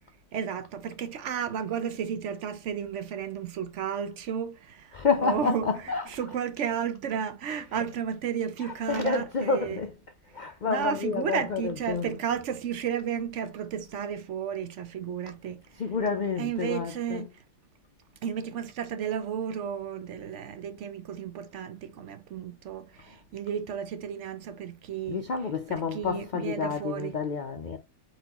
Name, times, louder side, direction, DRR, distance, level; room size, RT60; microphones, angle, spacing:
voice 1, 0.3-9.8 10.7-15.8 16.4-17.4 18.2-25.2 25.7-27.2, right 8 dB, 65° right, 0.8 m, -33 dB
voice 2, 4.9-6.3 7.4-7.9 8.6-10.0 10.3-12.2 15.7-17.3 25.1-27.8, left 5 dB, 65° left, 0.4 m, -30 dB
4.3 x 4.0 x 2.8 m
omnidirectional pair, 1.5 m